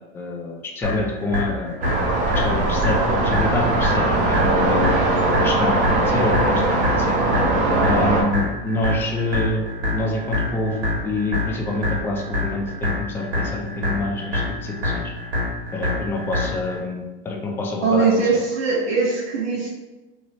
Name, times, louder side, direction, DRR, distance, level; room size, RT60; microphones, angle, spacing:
voice 1, 0.1-1.8 2.3-4.9 5.4-7.2 7.8-9.7 9.9-15.0 15.7-18.1, left 2 dB, 10° left, -1 dB, 0.3 m, -27 dB
sound 1, 0.8-16.8, left 2 dB, 65° right, 1.5 m, -27 dB
sound 2, 1.8-8.2, right 2 dB, 25° right, 0.8 m, -20 dB
voice 2, 17.8-19.7, right 4 dB, 80° right, -8 dB, 1.3 m, -21 dB
3.0 x 2.6 x 3.0 m, 1.1 s
hypercardioid pair, 115°, 30 cm